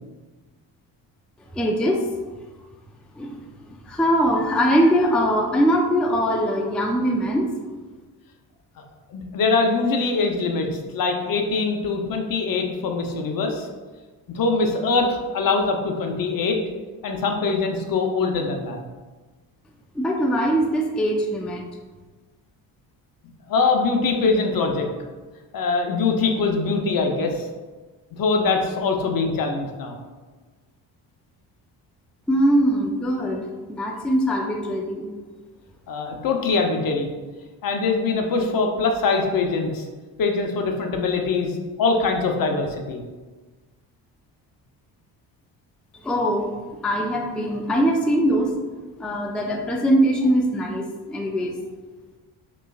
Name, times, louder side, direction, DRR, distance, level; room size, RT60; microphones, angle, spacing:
voice 1, 1.5-2.0 3.2-7.5 19.9-21.6 32.3-35.1 46.0-46.5 46.8-48.5 49.0-51.5, equal, ahead, 1 dB, 0.4 m, -22 dB
voice 2, 9.1-13.7 14.3-16.6 17.0-18.8 23.5-24.9 25.5-27.5 28.2-30.0 35.9-37.1 37.6-39.8 40.2-43.0, left 4 dB, 55° left, 3 dB, 0.8 m, -23 dB
5.1 x 3.2 x 2.3 m, 1.3 s
supercardioid pair, 75°, 41 cm